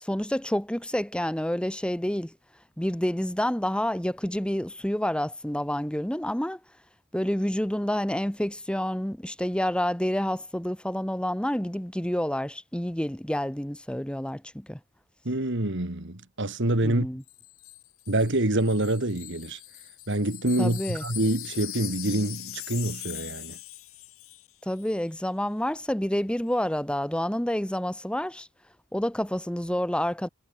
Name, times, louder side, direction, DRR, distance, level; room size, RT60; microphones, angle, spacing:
voice 1, 0.0-2.3 2.8-6.6 7.1-14.8 16.8-17.2 20.6-21.0 24.7-28.5 28.9-30.3, equal, 5° left, 1.1 m, -28 dB
voice 2, 15.2-17.1 18.1-19.6 20.1-23.6, right 1 dB, 60° right, 2.6 m, -26 dB
Wind chime, 17.3-24.5 24.8-25.0, left 16 dB, 85° left, 3.2 m, -41 dB
head